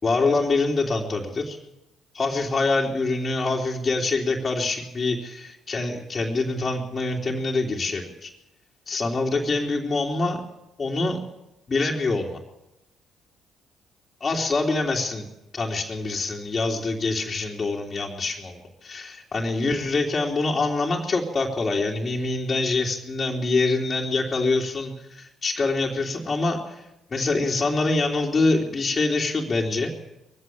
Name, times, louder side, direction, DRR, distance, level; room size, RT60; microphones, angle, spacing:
voice 1, 0.0-1.6 2.1-8.3 8.9-10.4 10.8-11.2 11.7-12.4 14.2-15.3 15.5-26.8 27.1-29.9, left 3 dB, 35° left, -4 dB, 3.2 m, -25 dB
22.0 x 16.0 x 8.7 m, 0.93 s
hypercardioid pair, 45°, 0 cm